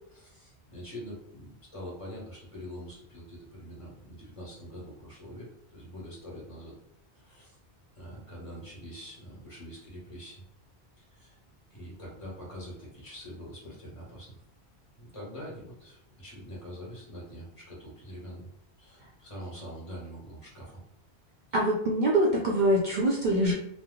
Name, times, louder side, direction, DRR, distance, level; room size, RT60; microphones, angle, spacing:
voice 1, 0.1-6.7 7.1-7.6 7.9-10.4 11.0-11.4 11.7-14.4 15.0-18.5 18.8-20.8, equal, 30° left, -5 dB, 1.2 m, -44 dB
voice 2, 21.5-23.5, right 1 dB, 55° right, -3 dB, 0.6 m, -24 dB
3.0 x 2.0 x 3.6 m, 0.77 s
omnidirectional pair, 1.1 m